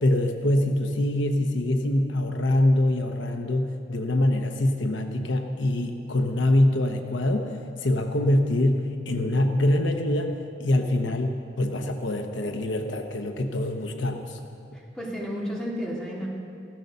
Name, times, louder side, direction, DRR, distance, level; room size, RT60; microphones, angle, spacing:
voice 1, 0.0-14.4, left 1 dB, 70° left, 5 dB, 0.9 m, -24 dB
voice 2, 14.7-16.3, equal, 5° left, -5 dB, 3.1 m, -32 dB
15.5 x 13.5 x 6.7 m, 2.6 s
head